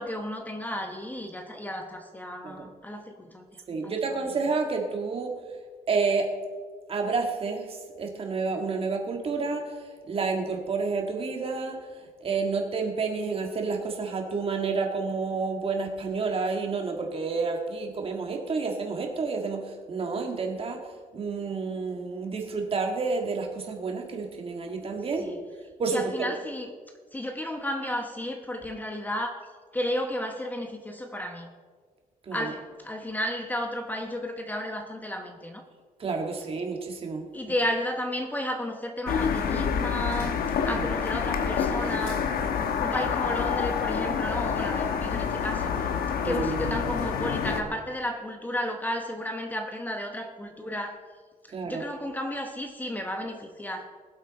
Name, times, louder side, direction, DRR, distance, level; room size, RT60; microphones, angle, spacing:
voice 1, 0.0-3.9 25.2-25.4 25.9-26.7 27.1-29.5 29.7-31.5 32.3-35.6 37.3-42.2 42.8-45.9 46.2-51.0 51.6-53.9, left 1 dB, 10° left, 4 dB, 0.9 m, -33 dB
voice 2, 3.7-5.3 5.9-6.3 6.9-9.8 10.1-11.8 12.2-20.8 21.1-25.3 25.8-26.3 32.2-32.5 36.0-37.2 40.7-40.9 46.2-46.8 51.5-51.8, right 4 dB, 40° right, 3 dB, 1.9 m, -29 dB
sound 1, 39.1-47.6, left 6 dB, 90° left, 1.1 m, -27 dB
21.0 x 7.9 x 4.2 m, 1.6 s
cardioid pair, 150°, 15 cm